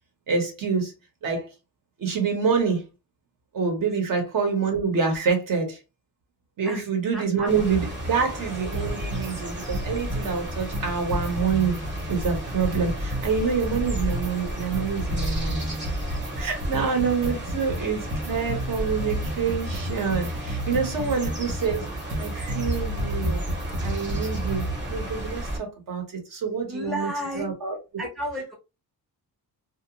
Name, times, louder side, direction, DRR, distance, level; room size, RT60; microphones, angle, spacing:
voice 1, 0.3-0.9 1.2-1.5 2.0-2.8 3.5-5.8 6.6-11.8 12.1-15.7 16.4-21.9 22.2-23.4 23.8-27.1 27.3-28.1, right 5 dB, 55° right, 1.0 m, -27 dB
voice 2, 7.1-7.5 22.3-22.5 26.7-27.5 28.0-28.5, equal, ahead, 0.5 m, -32 dB
sound 1, 7.5-25.6, right 1 dB, 30° right, 1.0 m, -33 dB
sound 2, 8.7-9.3 9.6-10.3 10.6-13.3 13.6-24.7, equal, 85° right, 0.9 m, -32 dB
2.5 x 2.2 x 2.8 m
cardioid pair, 160°, 39 cm